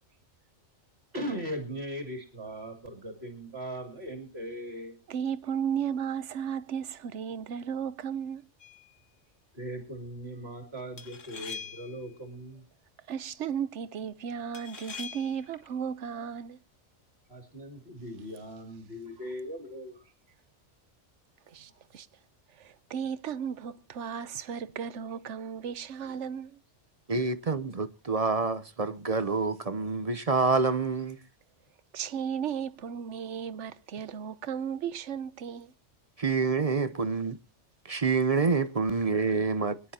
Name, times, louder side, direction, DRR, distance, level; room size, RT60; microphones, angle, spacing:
voice 1, 1.1-5.0 9.5-12.6 17.3-20.0 21.7-21.8 26.0-26.2, equal, 55° right, 3.0 m, -39 dB
voice 2, 5.1-8.4 13.1-16.6 21.5-22.1 22.6-26.6 31.9-35.7, right 8 dB, 75° right, 1.1 m, -35 dB
sound 1, 8.6-8.9 11.0-12.0 14.5-15.5, left 5 dB, 85° left, 2.0 m, -42 dB
voice 3, 27.1-31.2 36.2-37.4 37.9-39.9, right 4 dB, 35° right, 0.8 m, -27 dB
24.0 x 10.5 x 2.8 m
omnidirectional pair, 1.3 m